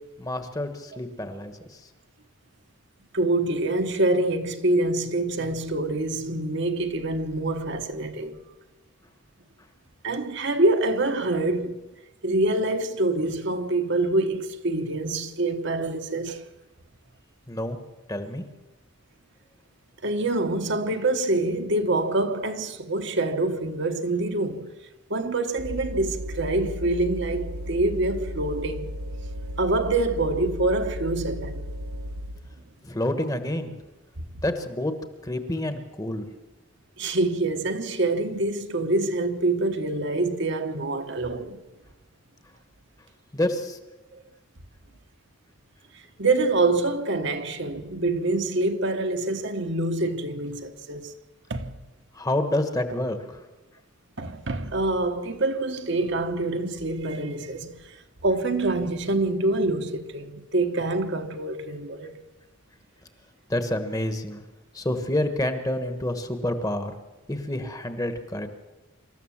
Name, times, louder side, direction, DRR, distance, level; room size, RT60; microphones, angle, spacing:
voice 1, 0.2-1.8 17.5-17.8 18.1-18.4 32.8-33.7 34.4-34.9 35.2-36.3 43.3-43.8 52.1-53.4 63.5-64.4 64.7-66.9 67.3-68.5, left 1 dB, 15° left, 1.2 m, -28 dB
voice 2, 3.1-8.4 10.0-11.8 12.2-16.4 20.0-24.7 25.1-28.9 29.6-31.6 37.0-41.6 44.1-44.2 45.9-51.1 51.5-51.8 54.2-58.0 58.2-62.2, right 2 dB, 55° right, 1.2 m, -26 dB
sound 1, 25.6-32.5, equal, 80° right, 1.5 m, -35 dB
25.5 x 14.0 x 7.3 m
head